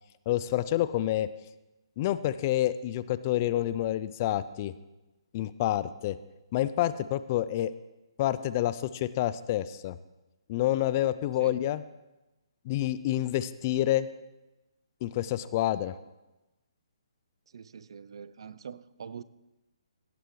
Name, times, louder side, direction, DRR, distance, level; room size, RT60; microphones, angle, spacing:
voice 1, 0.3-1.3 2.0-4.7 5.3-6.2 6.5-7.7 8.2-10.0 10.5-11.8 12.7-14.1 15.0-15.9, left 13 dB, 30° left, 0.4 m, -28 dB
voice 2, 17.5-19.2, right 7 dB, 65° right, 0.5 m, -44 dB
17.0 x 10.0 x 3.2 m
hypercardioid pair, 155°, 3 cm